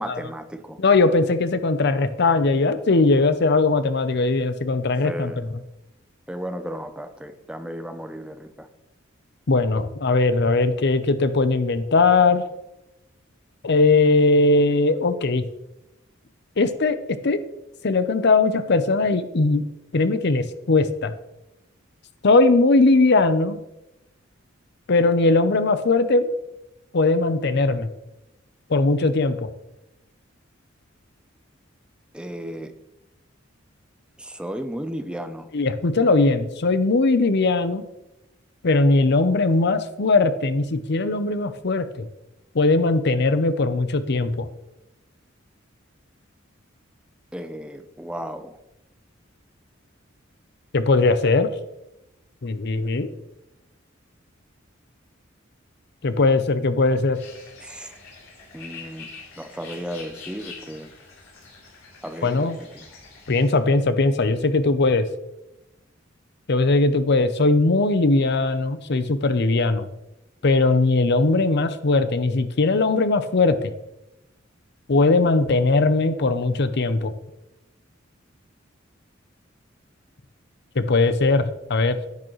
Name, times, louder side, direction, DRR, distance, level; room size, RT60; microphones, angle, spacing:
voice 1, 0.0-0.8 5.0-5.5 6.3-8.7 32.1-32.7 34.2-35.5 47.3-48.6 57.6-58.0 58.5-59.1 59.4-60.9 62.0-62.9, equal, 5° right, 8 dB, 0.6 m, -34 dB
voice 2, 0.8-5.3 9.5-12.4 13.6-15.5 16.6-17.4 17.8-19.6 19.9-21.1 22.2-23.6 24.9-26.3 26.9-27.9 28.7-29.5 35.5-37.8 38.6-42.1 42.5-44.5 50.7-51.5 52.4-53.1 56.0-57.2 62.2-62.6 63.3-65.1 66.5-69.9 70.4-73.7 74.9-77.1 80.8-82.0, left 3 dB, 55° left, 11 dB, 0.7 m, -19 dB
sound 1, 57.1-63.6, left 4 dB, 80° left, 3.6 m, -44 dB
10.5 x 8.7 x 3.1 m, 0.91 s
head